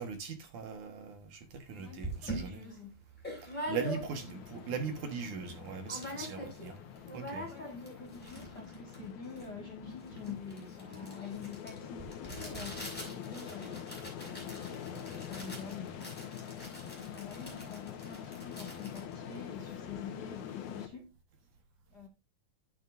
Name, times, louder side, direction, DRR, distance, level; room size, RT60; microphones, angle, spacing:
voice 1, 0.0-2.6 3.4-6.8 7.1-7.5, right 6 dB, 60° right, 2.6 m, -40 dB
sound 1, 1.5-1.6 2.0-4.4 4.8-4.9 5.1-5.6 5.9-6.7 6.9-20.0, equal, ahead, 5.4 m, -44 dB
voice 2, 1.7-3.0 7.3-13.9 14.2-16.2 16.9-21.1 21.9-22.1, left 6 dB, 40° left, 1.7 m, -47 dB
sound 2, 3.7-20.9, left 9 dB, 80° left, 3.1 m, -45 dB
11.0 x 9.6 x 2.6 m
omnidirectional pair, 4.2 m